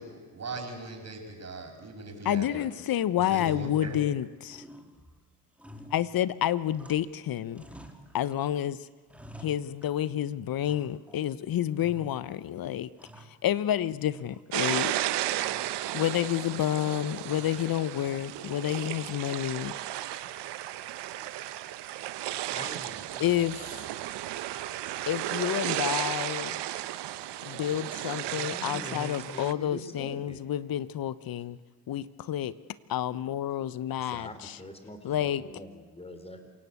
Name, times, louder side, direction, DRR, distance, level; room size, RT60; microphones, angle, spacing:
voice 1, 0.0-2.6 3.2-4.0, right 3 dB, 35° right, 3 dB, 6.9 m, -39 dB
voice 2, 2.2-4.6 5.9-7.6 8.1-8.9 9.4-12.9 13.2-14.9 15.9-19.7 23.2-23.9 25.1-26.6 27.4-31.6 31.9-32.5 32.9-34.6 35.0-35.4, left 11 dB, 45° left, 17 dB, 1.1 m, -29 dB
sound 1, 2.8-2.9 3.3-4.2 4.5-7.2 7.5-8.5 8.8-10.2 10.6-11.3 11.8-12.4 12.7-13.8 14.1-14.8 15.4-15.8 17.2-17.8, right 1 dB, 5° right, 3.2 m, -51 dB
sound 2, 14.5-29.5, right 14 dB, 60° right, 1.3 m, -34 dB
voice 3, 19.3-19.8 21.2-21.3 22.5-23.3 25.5-25.9 26.9-27.0 28.2-30.4 34.0-36.5, left 1 dB, 10° left, 8 dB, 4.5 m, -44 dB
27.5 x 17.0 x 8.4 m, 1.4 s
hypercardioid pair, 70°, 47 cm